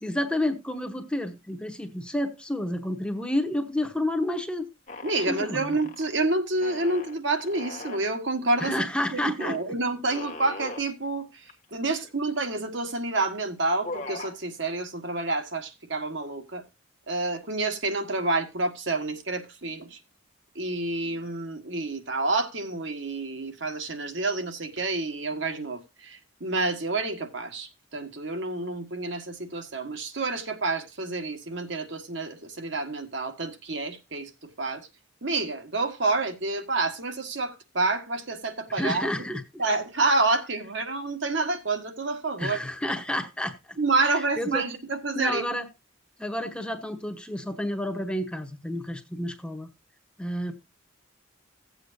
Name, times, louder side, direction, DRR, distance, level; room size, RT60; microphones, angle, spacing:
voice 1, 0.0-4.7 5.3-5.8 8.6-9.6 38.8-39.6 42.4-43.5 44.0-44.6 45.1-45.7 46.2-49.7 50.2-50.5, left 1 dB, 5° left, 1.0 m, -30 dB
sound 1, 4.9-6.1 6.6-8.1 8.6-8.9 9.4-9.6 10.1-10.9 11.5-11.6 11.8-12.6 13.2-13.4 13.6-14.4, left 2 dB, 35° left, 1.2 m, -39 dB
voice 2, 5.0-8.7 9.1-11.4 11.7-16.6 17.1-20.0 20.5-34.3 34.6-34.9 35.2-39.1 39.6-42.6 43.8-45.5, right 3 dB, 65° right, 1.5 m, -28 dB
16.0 x 8.0 x 2.7 m
head